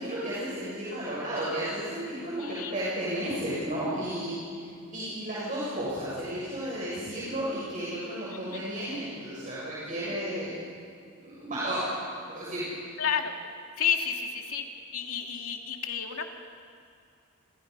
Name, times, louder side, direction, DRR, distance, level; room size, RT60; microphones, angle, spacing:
voice 1, 0.0-10.5 11.2-11.9 12.2-12.7, right 1 dB, 40° right, -8 dB, 7.6 m, -33 dB
voice 2, 2.4-2.7 8.3-8.6 13.0-13.4 13.8-14.6 14.9-16.3, left 7 dB, 75° left, 2 dB, 2.7 m, -31 dB
30.0 x 27.5 x 5.6 m, 2.3 s
head